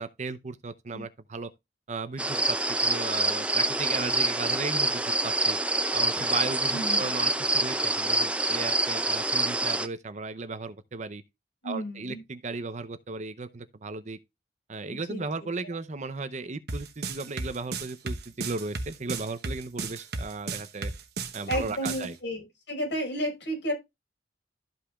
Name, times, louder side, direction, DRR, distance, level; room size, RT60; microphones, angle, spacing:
voice 1, 0.0-1.5 1.9-5.6 5.9-11.2 11.6-14.2 14.7-20.9 21.3-22.2, right 3 dB, 40° right, 0.7 m, -36 dB
sound 1, 2.2-9.9, right 2 dB, 5° right, 0.5 m, -26 dB
voice 2, 6.7-7.1 11.6-12.2 15.1-15.2 21.5-23.7, equal, 80° left, 5.0 m, -32 dB
sound 2, 16.7-22.1, right 3 dB, 60° right, 1.1 m, -33 dB
13.5 x 5.4 x 2.4 m
head